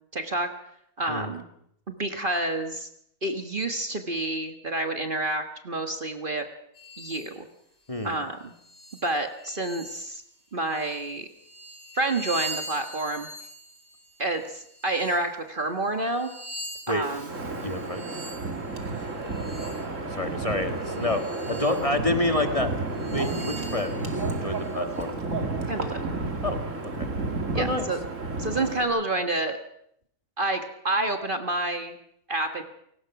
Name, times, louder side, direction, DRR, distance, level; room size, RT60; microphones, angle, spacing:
voice 1, 0.1-0.5 1.0-1.5 1.9-2.9 3.2-6.5 7.0-7.5 8.0-8.5 9.0-10.2 10.5-11.3 11.9-13.3 14.2-16.3 16.9-17.3 25.7-26.0 27.5-28.0 28.4-29.6 30.4-32.0 32.3-32.6, right 2 dB, 40° right, 6 dB, 1.6 m, -28 dB
sound 1, 6.7-7.3 7.9-8.1 8.6-10.2 10.6-15.2 15.8-19.9 20.8-21.9 22.3-22.4 22.9-25.0, right 1 dB, 40° left, 5.8 m, -42 dB
Wind, 17.0-28.8, right 3 dB, 65° right, 2.8 m, -31 dB
voice 2, 17.6-18.0 20.1-24.0 24.4-25.2 26.4-26.6 26.8-27.1 27.5-27.9, left 2 dB, 25° left, 5 dB, 1.9 m, -28 dB
28.5 x 18.5 x 5.9 m, 0.73 s
omnidirectional pair, 1.4 m